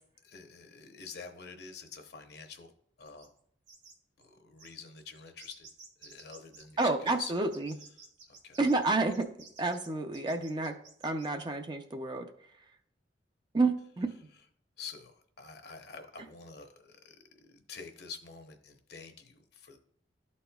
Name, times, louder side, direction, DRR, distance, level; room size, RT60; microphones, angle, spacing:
voice 1, 0.2-2.7 3.0-3.3 4.2-5.7 6.0-7.5 8.3-8.6 14.8-17.2 17.4-19.8, left 5 dB, 60° left, 5 dB, 0.8 m, -47 dB
sound 1, 3.0-3.4 3.7-4.0 4.2-4.3 4.6-11.4, right 4 dB, 80° right, 1.9 m, -54 dB
voice 2, 6.8-7.8 8.6-9.3 9.6-10.8 11.0-12.3 13.5-14.1, right 3 dB, 25° right, 6 dB, 0.4 m, -29 dB
12.0 x 4.2 x 2.3 m, 0.66 s
head